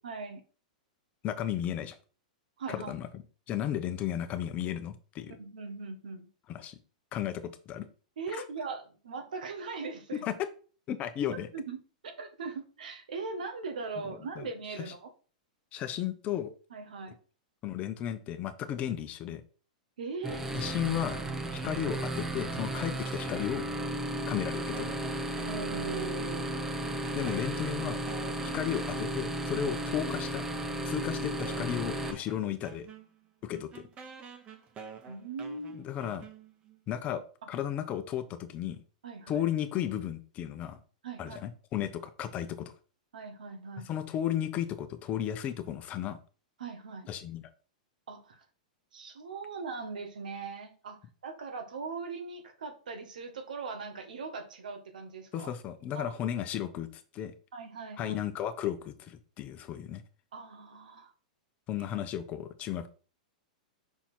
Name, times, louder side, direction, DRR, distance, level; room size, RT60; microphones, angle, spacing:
voice 1, 0.0-0.4 2.6-2.9 5.4-6.3 8.2-10.3 11.3-15.1 16.7-17.1 20.0-20.5 25.4-26.6 35.1-35.9 39.0-39.4 41.0-41.4 43.1-43.9 46.6-47.1 48.1-48.4 48.9-55.5 55.9-56.1 57.5-58.2 60.3-61.1, right 4 dB, 80° right, 6 dB, 1.6 m, -40 dB
voice 2, 1.2-2.0 2.7-3.1 3.5-5.3 6.5-6.8 7.1-7.9 8.3-8.4 10.1-10.5 10.9-11.5 14.4-14.5 15.7-16.5 17.6-19.4 20.5-21.2 21.5-23.6 24.3-24.9 27.2-28.0 28.4-30.4 30.8-32.9 33.4-33.9 35.7-36.2 36.9-38.8 39.3-40.8 41.2-42.7 43.8-46.2 47.1-47.4 55.3-57.3 58.0-60.0 61.7-62.9, left 10 dB, 35° left, 10 dB, 0.9 m, -34 dB
sound 1, 20.2-32.1, right 1 dB, 10° right, 1.0 m, -34 dB
sound 2, 24.7-26.6 26.8-30.1 30.8-30.9 31.4-36.8, right 6 dB, 30° right, 1.3 m, -49 dB
5.8 x 4.5 x 4.4 m, 0.37 s
hypercardioid pair, 125°, 4 cm